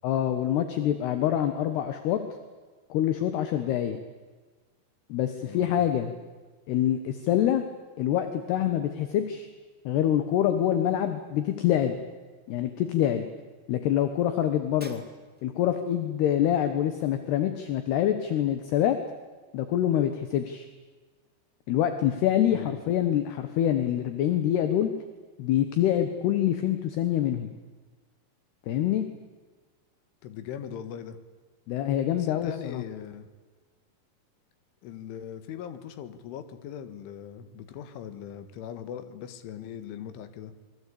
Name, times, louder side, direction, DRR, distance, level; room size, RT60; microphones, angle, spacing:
voice 1, 0.0-2.2 2.9-4.0 5.1-6.1 6.7-7.6 8.0-9.5 9.8-12.0 12.5-13.3 13.7-15.0 15.4-19.0 19.5-20.7 21.7-24.9 25.4-27.5 28.7-29.0 31.7-32.8, left 11 dB, 70° left, 8 dB, 3.1 m, -25 dB
voice 2, 5.4-5.7 22.5-22.8 30.2-31.2 32.2-33.3 34.8-40.5, left 9 dB, 90° left, 10 dB, 4.1 m, -40 dB
Shatter, 14.8-15.6, right 1 dB, 10° right, 0.5 m, -49 dB
27.0 x 23.0 x 8.6 m, 1.4 s
omnidirectional pair, 5.4 m